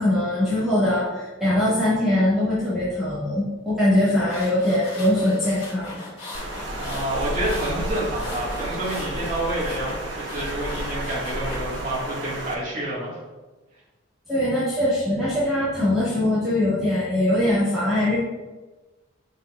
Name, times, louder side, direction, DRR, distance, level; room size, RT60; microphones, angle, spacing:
voice 1, 0.0-6.0 14.3-18.2, left 1 dB, ahead, -13 dB, 2.1 m, -22 dB
sound 1, 4.0-12.0, left 2 dB, 30° left, 2.4 m, -40 dB
Water, 6.3-12.5, right 1 dB, 60° right, 1.2 m, -31 dB
voice 2, 6.8-13.2, right 1 dB, 40° right, -6 dB, 2.0 m, -28 dB
9.2 x 7.2 x 2.5 m, 1.2 s
head